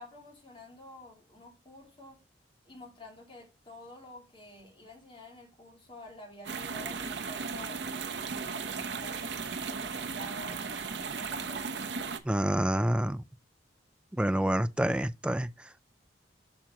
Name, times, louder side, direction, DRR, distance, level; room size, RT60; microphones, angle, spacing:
voice 1, 0.0-2.2 2.6-11.9, left 1 dB, 30° left, 3.2 m, -49 dB
sound 1, 6.5-12.2, right 5 dB, 70° right, 0.9 m, -36 dB
voice 2, 12.3-13.2 14.2-15.5, right 1 dB, 5° right, 0.3 m, -27 dB
8.7 x 6.2 x 2.9 m
head